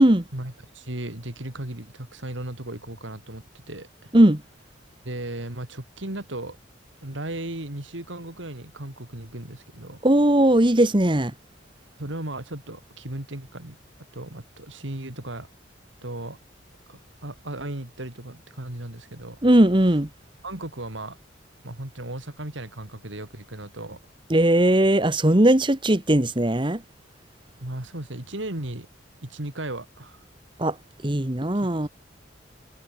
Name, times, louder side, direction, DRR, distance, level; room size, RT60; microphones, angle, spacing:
voice 1, 0.3-4.1 5.0-6.6 7.0-10.0 12.0-13.7 14.1-15.5 16.0-16.4 16.9-19.4 20.4-21.2 21.6-24.0 27.6-28.9 29.2-30.2 31.5-31.7, right 1 dB, 75° right, 3.3 m, -36 dB
voice 2, 10.0-11.3 19.4-20.1 24.3-26.8 30.6-30.7 31.0-31.9, right 1 dB, 25° right, 1.4 m, -18 dB
head